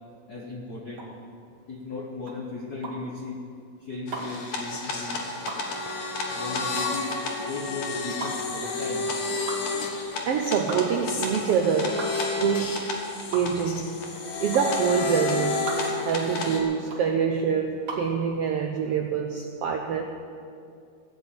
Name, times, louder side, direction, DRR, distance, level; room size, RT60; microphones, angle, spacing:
voice 1, 0.3-1.1 1.7-3.4 3.8-5.3 6.3-9.1, left 3 dB, 80° left, 0 dB, 0.8 m, -36 dB
sound 1, 0.9-18.2, right 3 dB, 40° right, 2.6 m, -39 dB
sound 2, 4.1-16.6, left 3 dB, 65° left, 2.9 m, -31 dB
voice 2, 10.3-12.0 12.3-12.8 13.3-13.9 14.4-15.7 16.0-20.0, right 7 dB, 85° right, 4 dB, 1.3 m, -25 dB
16.5 x 8.1 x 8.6 m, 2.4 s
omnidirectional pair, 3.6 m